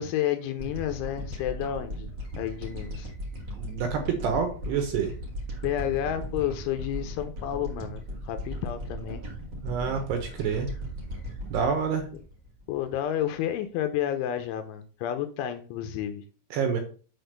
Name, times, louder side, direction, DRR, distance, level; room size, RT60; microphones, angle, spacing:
voice 1, 0.0-2.1 2.4-3.1 5.6-9.2 12.7-16.2, left 11 dB, 80° left, 8 dB, 2.9 m, -30 dB
sound 1, 0.6-13.1, equal, 90° right, 0.9 m, -37 dB
voice 2, 3.6-5.1 9.6-10.7 11.5-12.0 16.5-16.8, right 6 dB, 70° right, 5 dB, 2.7 m, -27 dB
7.8 x 4.1 x 6.7 m, 0.38 s
omnidirectional pair, 5.8 m